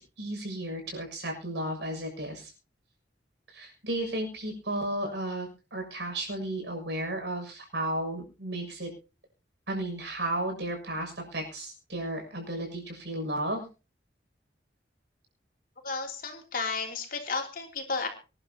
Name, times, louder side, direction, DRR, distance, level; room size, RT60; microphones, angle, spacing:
voice 1, 0.2-2.5 3.5-8.9 9.7-13.6, right 1 dB, 75° right, 2 dB, 6.7 m, -34 dB
voice 2, 15.8-18.1, left 4 dB, 50° left, 3 dB, 3.1 m, -33 dB
25.5 x 11.0 x 2.9 m, 0.32 s
head